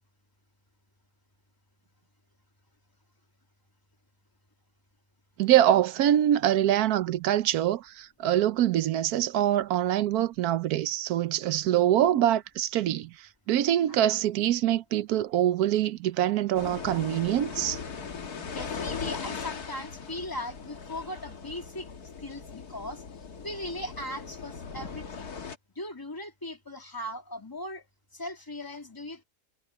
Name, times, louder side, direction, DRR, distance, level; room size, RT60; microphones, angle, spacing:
voice 1, 5.4-13.1 13.5-17.8, right 12 dB, 80° right, 1.2 m, -24 dB
sound 1, 16.5-25.6, left 6 dB, 80° left, 2.2 m, -39 dB
voice 2, 18.5-21.9 22.2-25.3 25.7-27.9 28.1-29.2, left 1 dB, 15° left, 2.4 m, -39 dB
omnidirectional pair, 1.6 m